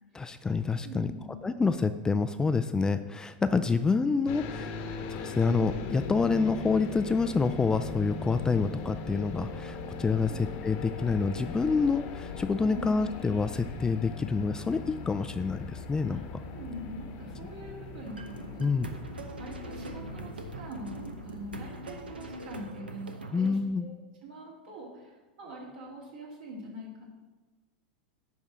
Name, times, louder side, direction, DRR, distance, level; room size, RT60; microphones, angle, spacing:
voice 1, 0.1-1.1 1.4-4.7 5.1-16.2 18.6-18.9 23.3-23.9, left 4 dB, 15° left, 10 dB, 0.3 m, -27 dB
voice 2, 0.8-1.3 10.3-10.4 12.6-12.9 16.1-16.2 16.5-18.7 19.4-23.9 24.2-27.1, right 1 dB, 60° right, -2 dB, 2.7 m, -43 dB
sound 1, 4.3-22.6, left 4 dB, 50° left, 1.0 m, -40 dB
sound 2, 18.0-23.5, right 2 dB, 90° right, 0.8 m, -43 dB
9.9 x 3.6 x 6.1 m, 1.2 s
hypercardioid pair, 95°, 5 cm